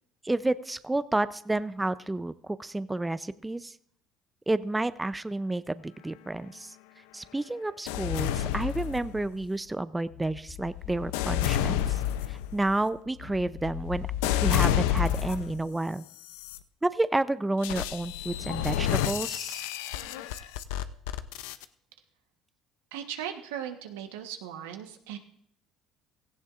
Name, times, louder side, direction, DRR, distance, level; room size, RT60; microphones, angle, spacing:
voice 1, 0.2-3.8 4.5-6.8 7.1-12.0 12.3-14.1 14.4-16.1 16.8-19.6, right 2 dB, 10° right, 15 dB, 0.5 m, -30 dB
sound 1, 7.9-9.4 10.1-15.6 16.2-16.6 17.6-21.6, left 11 dB, 85° left, 0.5 m, -30 dB
voice 2, 22.9-25.2, right 10 dB, 90° right, 6 dB, 1.1 m, -38 dB
17.0 x 15.0 x 2.5 m, 0.69 s
supercardioid pair, 80°, 0 cm